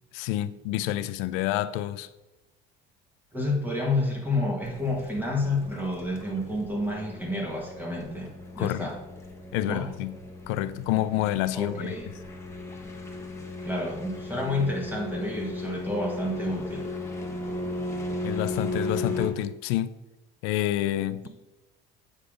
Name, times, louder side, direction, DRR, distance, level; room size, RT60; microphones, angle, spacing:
voice 1, 0.1-2.1 8.6-8.9 9.5-10.2 10.5-12.0 18.2-19.9 20.4-21.3, left 14 dB, 80° left, 0.4 m, -28 dB
voice 2, 3.3-8.9 9.7-9.8 11.5-12.1 13.6-16.9 21.2-21.3, left 2 dB, 10° right, 1.4 m, -29 dB
sound 1, 4.6-19.3, left 2 dB, 15° left, 1.2 m, -36 dB
8.2 x 3.8 x 4.9 m
cardioid pair, 120°, 20 cm